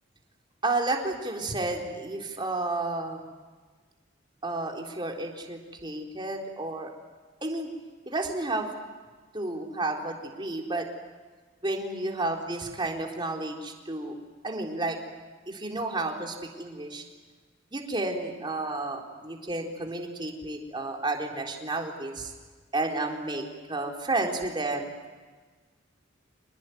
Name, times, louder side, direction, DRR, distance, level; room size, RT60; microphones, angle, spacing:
voice 1, 0.6-3.3 4.4-6.9 7.4-7.7 8.1-8.7 9.3-10.9 11.6-14.2 14.4-15.0 15.5-17.0 17.7-22.3 22.7-23.4 23.7-24.9, right 2 dB, 25° right, 1 dB, 4.0 m, -31 dB
27.5 x 20.5 x 9.6 m, 1.4 s
head